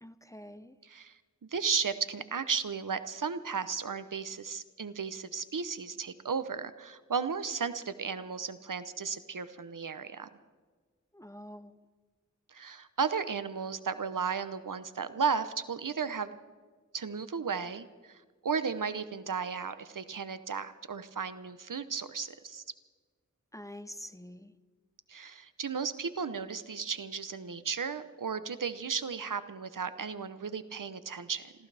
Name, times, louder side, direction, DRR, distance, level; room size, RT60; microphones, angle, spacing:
voice 1, 0.0-0.7 11.1-11.7 23.5-24.5, equal, 10° left, 12 dB, 0.7 m, -46 dB
voice 2, 0.8-1.2 1.5-10.3 12.5-16.4 16.9-22.6 25.1-31.5, right 6 dB, 80° right, 12 dB, 0.8 m, -34 dB
27.5 x 14.5 x 3.4 m, 1.4 s
wide cardioid pair, 55°, 32 cm